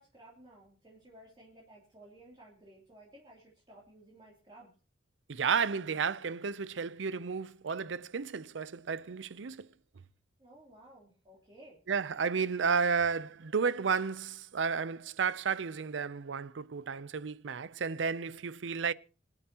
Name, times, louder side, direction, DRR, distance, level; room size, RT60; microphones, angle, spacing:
voice 1, 0.0-4.7 10.4-11.8, right 1 dB, 25° right, 3.1 m, -56 dB
voice 2, 5.3-9.7 11.9-18.9, right 5 dB, 90° right, 0.6 m, -32 dB
26.0 x 9.0 x 2.9 m
head